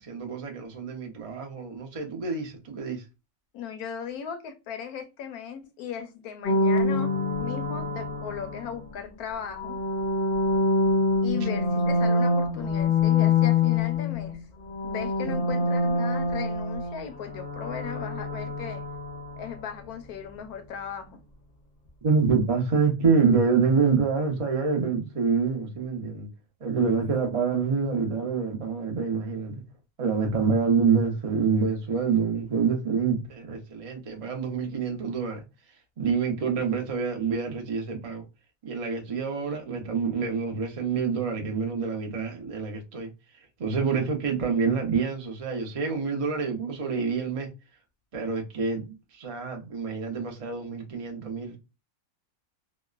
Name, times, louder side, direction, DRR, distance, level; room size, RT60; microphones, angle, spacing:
voice 1, 0.0-3.0 22.0-26.3 26.6-29.6 30.0-35.4 36.0-38.2 38.6-43.1 43.6-47.5 48.1-51.6, right 5 dB, 60° right, 0.3 m, -26 dB
voice 2, 3.5-7.1 7.4-9.8 11.2-14.4 14.8-18.8 19.4-21.2 26.9-27.2, left 8 dB, 80° left, 1.1 m, -37 dB
sound 1, 6.4-8.9 9.5-14.4 14.6-19.6, left 3 dB, 45° left, 0.6 m, -25 dB
3.0 x 2.0 x 2.3 m
omnidirectional pair, 1.6 m